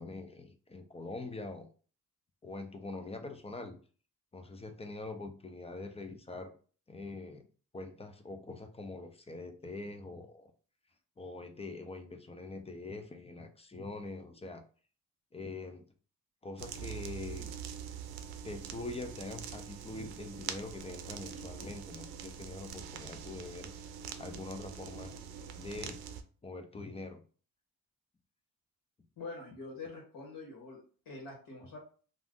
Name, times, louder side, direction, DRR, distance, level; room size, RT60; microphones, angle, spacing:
voice 1, 0.0-1.7 2.4-3.8 4.3-6.5 6.9-7.4 7.7-10.5 11.2-14.6 15.3-15.8 16.4-17.5 18.4-23.7 24.2-25.1 25.6-26.0 26.4-27.2, left 3 dB, 15° left, 6 dB, 0.5 m, -43 dB
sound 1, 16.6-26.2, right 8 dB, 85° right, 0.5 m, -44 dB
voice 2, 29.2-30.8 31.0-31.8, left 3 dB, 70° left, -2 dB, 1.3 m, -45 dB
2.5 x 2.5 x 3.6 m, 0.40 s
cardioid pair, 85°, 36 cm